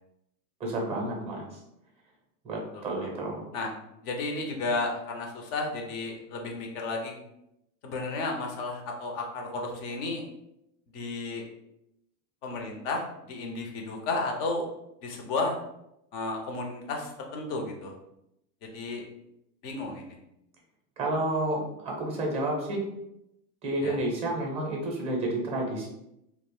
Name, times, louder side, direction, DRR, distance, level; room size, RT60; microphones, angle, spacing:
voice 1, 0.6-1.6 2.4-3.5 21.0-22.8 23.6-25.9, right 1 dB, 15° right, 0 dB, 0.6 m, -30 dB
voice 2, 4.0-7.1 7.8-10.3 10.9-11.5 12.4-14.7 15.0-15.6 16.1-17.9 18.6-19.1 19.6-20.2 23.8-24.0, left 3 dB, 35° left, 1 dB, 0.5 m, -33 dB
2.4 x 2.0 x 3.6 m, 0.84 s
supercardioid pair, 135°, 47 cm